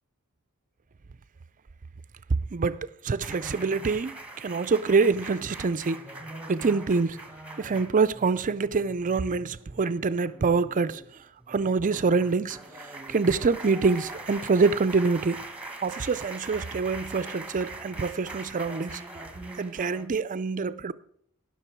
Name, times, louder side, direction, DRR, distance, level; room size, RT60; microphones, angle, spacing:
voice 1, 2.5-4.1 4.4-6.0 6.5-7.2 7.6-11.0 11.5-12.6 13.1-15.4 15.8-19.0 19.6-20.9, right 4 dB, 35° right, 0.5 m, -25 dB
sound 1, 3.2-20.1, right 2 dB, 5° right, 1.1 m, -42 dB
17.5 x 6.3 x 4.6 m
head